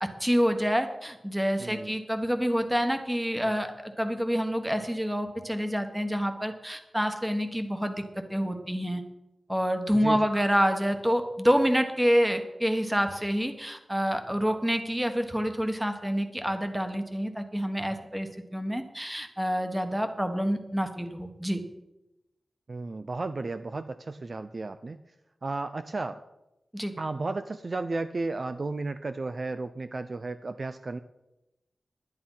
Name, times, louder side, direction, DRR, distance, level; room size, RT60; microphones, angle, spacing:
voice 1, 0.0-8.0 8.3-9.0 9.5-21.6 26.7-26.9, equal, 5° right, 7 dB, 1.3 m, -27 dB
voice 2, 1.6-2.0 10.0-10.3 22.7-25.0 25.4-26.2 27.0-31.0, right 3 dB, 45° right, 10 dB, 0.5 m, -33 dB
11.0 x 10.5 x 5.7 m, 0.94 s
wide cardioid pair, 110°, 0 cm